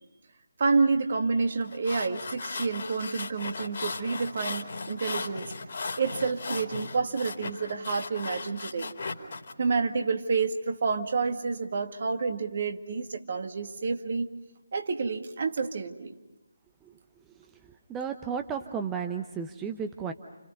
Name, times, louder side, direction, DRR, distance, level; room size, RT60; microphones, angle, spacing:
voice 1, 0.6-5.5 6.0-8.9 9.6-14.3 14.7-16.1, right 4 dB, 45° right, 5 dB, 2.0 m, -29 dB
sound 1, 1.6-9.5, left 4 dB, 45° left, 2.7 m, -37 dB
voice 2, 17.9-20.1, right 6 dB, 10° right, 6 dB, 0.9 m, -33 dB
30.0 x 29.0 x 5.4 m, 1.0 s
figure-of-eight pair, 145°, 0 cm